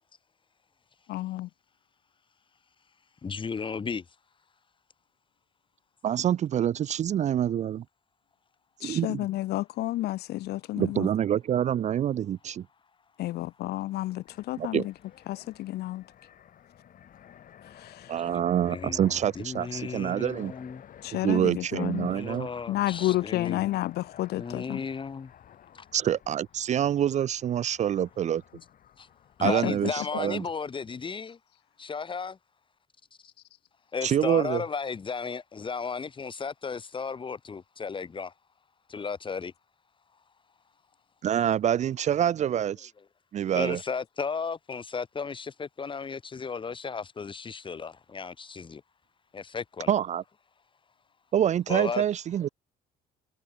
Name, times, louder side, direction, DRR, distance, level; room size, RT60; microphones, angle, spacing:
voice 1, 1.1-1.5 8.8-11.1 13.2-14.9 15.3-16.0 17.8-18.1 21.0-22.2 22.7-24.8 29.4-29.9, left 16 dB, 70° left, 1.0 m, -31 dB
voice 2, 3.2-4.0 18.3-20.8 22.0-23.7 24.3-25.3 25.7-25.8 29.0-29.1 29.4-31.4 31.8-32.4 33.9-38.3 38.9-39.5 43.6-48.8 49.3-49.9 51.7-52.0, left 5 dB, 30° left, 3.0 m, -35 dB
voice 3, 6.0-7.8 8.8-9.3 10.7-12.7 14.6-14.9 18.1-20.5 21.1-22.5 25.9-28.4 29.4-30.5 34.0-34.6 41.2-42.9 43.3-43.8 49.9-50.2 51.3-52.5, right 10 dB, 45° right, 0.5 m, -26 dB
Fixed-wing aircraft airplane, 14.3-29.5, left 10 dB, 55° left, 5.0 m, -53 dB
cardioid pair, 110°, 17 cm